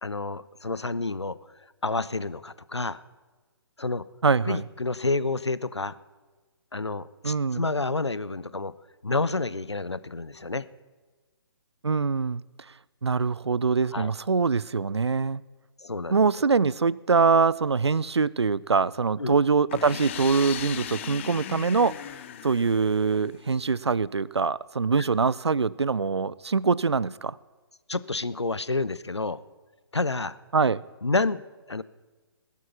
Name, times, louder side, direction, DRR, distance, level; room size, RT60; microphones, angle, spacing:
voice 1, 0.0-1.4 1.8-3.0 3.8-4.0 4.4-6.0 6.7-8.7 9.0-10.7 13.9-14.1 15.8-16.2 19.2-19.4 27.9-29.4 29.9-30.4 31.0-31.4 31.7-31.8, left 3 dB, 90° left, 17 dB, 0.6 m, -29 dB
voice 2, 4.2-4.6 7.2-7.7 11.8-12.4 13.0-15.4 16.1-22.1 22.4-27.4 30.5-30.8, right 5 dB, 80° right, 23 dB, 0.4 m, -24 dB
sound 1, 19.7-23.5, left 10 dB, 30° left, 0.6 m, -37 dB
19.0 x 8.4 x 5.7 m, 1.3 s
figure-of-eight pair, 135°, 14 cm